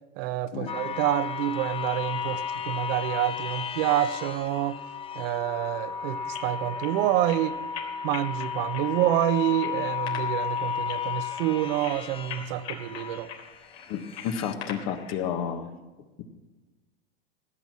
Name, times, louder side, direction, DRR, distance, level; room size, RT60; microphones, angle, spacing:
voice 1, 0.2-4.8 5.1-7.6 8.0-13.3, right 13 dB, 60° right, 12 dB, 0.9 m, -27 dB
sound 1, 0.7-13.3 13.9-14.5, left 8 dB, 15° left, 0.6 m, -34 dB
sound 2, 6.2-15.3, left 7 dB, 80° left, 3.6 m, -43 dB
voice 2, 13.9-15.7, left 8 dB, 50° left, 7 dB, 1.6 m, -31 dB
17.0 x 9.0 x 6.2 m, 1.2 s
supercardioid pair, 125°, 33 cm